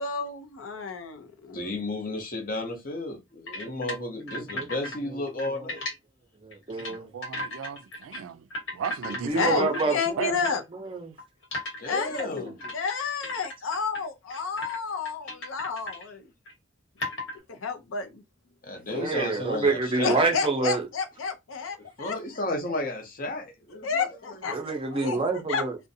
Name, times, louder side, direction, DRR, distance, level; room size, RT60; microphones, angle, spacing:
voice 1, 0.0-1.6 9.3-10.6 11.8-16.3 17.5-18.2 20.0-22.2 23.8-24.6 24.9-25.6, left 5 dB, 85° left, 0.5 m, -31 dB
voice 2, 1.5-5.8 9.4-10.0 11.8-12.5 18.6-20.2 22.0-24.4, left 2 dB, 45° left, 0.7 m, -33 dB
sound 1, 3.5-5.0 5.3-5.9 6.5-7.0 7.2-8.2 8.5-10.0 10.4-10.6 11.2-14.0 14.3-14.8 15.1-16.1 16.5-16.6 17.0-17.4, left 1 dB, 70° left, 1.1 m, -36 dB
voice 3, 4.2-4.7 5.5-5.6 6.4-7.1 9.1-11.1 18.9-20.9 24.5-25.8, right 3 dB, 25° right, 0.5 m, -28 dB
voice 4, 6.8-8.4 8.7-9.6 10.2-10.4, right 7 dB, 85° right, 0.3 m, -35 dB
2.5 x 2.1 x 2.6 m
head